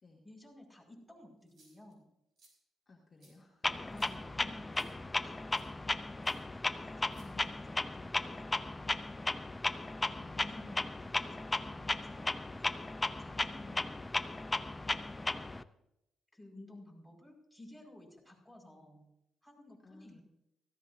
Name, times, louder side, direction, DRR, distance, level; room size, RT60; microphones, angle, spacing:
voice 1, 0.2-2.0 3.9-4.8 5.2-5.4 6.8-9.0 9.9-12.7 13.2-14.0 14.9-15.6 16.3-19.1 19.4-20.2, left 1 dB, 5° right, 0 dB, 5.4 m, -55 dB
sound 1, 1.4-1.9 2.4-2.5 3.2-3.3 3.9-4.1 4.7-4.9 5.5-5.7 6.2-6.4 7.1-7.7, right 3 dB, 60° right, 5.9 m, -64 dB
voice 2, 2.9-3.9 4.5-4.7 10.2-10.5 19.8-20.2, left 2 dB, 30° left, -2 dB, 2.3 m, -60 dB
Clock, 3.6-15.6, left 2 dB, 15° left, 0.6 m, -36 dB
17.0 x 15.0 x 2.7 m, 0.84 s
cardioid pair, 90°, 0 cm